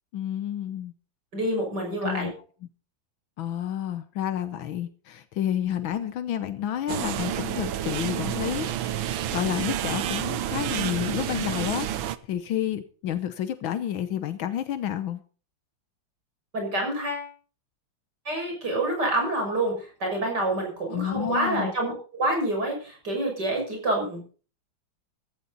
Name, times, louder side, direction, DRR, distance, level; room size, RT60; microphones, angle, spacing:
voice 1, 0.1-0.9 2.0-2.3 3.4-11.9 12.3-15.2 20.9-21.7, left 10 dB, 80° left, 11 dB, 1.7 m, -30 dB
voice 2, 1.3-2.3 16.5-17.3 18.3-24.2, right 1 dB, 55° right, 2 dB, 7.0 m, -27 dB
sound 1, 6.9-12.2, right 11 dB, 85° right, 1.6 m, -29 dB
15.5 x 14.5 x 4.1 m, 0.38 s
omnidirectional pair, 2.1 m